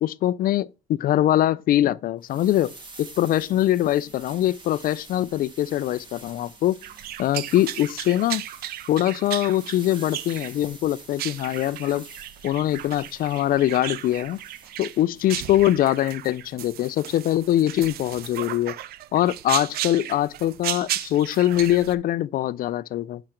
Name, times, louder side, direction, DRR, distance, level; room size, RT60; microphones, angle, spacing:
voice 1, 0.0-2.7 3.0-6.8 7.2-8.4 8.9-12.0 12.4-14.4 14.8-18.8 19.1-23.2, left 13 dB, 55° left, 0.5 m, -23 dB
sound 1, 2.2-15.1, right 2 dB, 30° right, 1.8 m, -47 dB
sound 2, 6.8-21.9, right 12 dB, 65° right, 0.5 m, -35 dB
7.7 x 5.0 x 4.4 m
cardioid pair, 110°, 17 cm